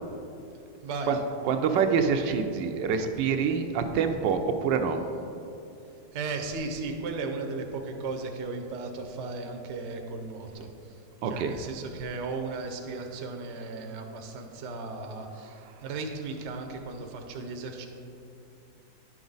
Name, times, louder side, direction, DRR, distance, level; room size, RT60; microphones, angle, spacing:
voice 1, 0.8-1.2 6.1-10.9 11.2-17.9, right 3 dB, 55° right, 3 dB, 0.8 m, -36 dB
voice 2, 1.4-5.0 11.2-11.6, right 6 dB, 80° right, 6 dB, 1.2 m, -26 dB
9.9 x 6.1 x 3.9 m, 2.7 s
omnidirectional pair, 1.9 m